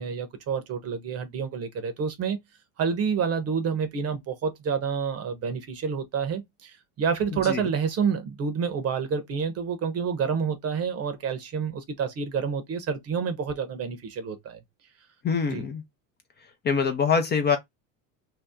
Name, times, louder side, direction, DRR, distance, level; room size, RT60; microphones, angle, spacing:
voice 1, 0.0-2.4 2.8-14.6 15.5-15.6, right 6 dB, 35° right, 0.9 m, -28 dB
voice 2, 15.2-15.8 16.6-17.6, left 6 dB, 25° left, 0.6 m, -24 dB
2.8 x 2.2 x 3.5 m
supercardioid pair, 100°, 40 cm